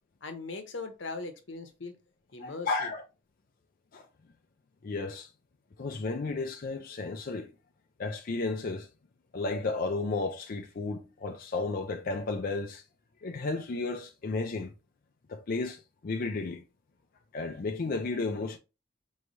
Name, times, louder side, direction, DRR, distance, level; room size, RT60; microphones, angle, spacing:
voice 1, 0.2-2.0 2.3-2.9, left 3 dB, 80° left, 0.9 m, -39 dB
voice 2, 2.4-3.0 3.9-4.1 4.8-5.3 5.8-7.5 8.0-8.9 9.3-12.8 13.2-14.7 15.3-16.6 17.3-18.6, left 3 dB, 50° left, 0.4 m, -33 dB
4.5 x 3.2 x 2.6 m
head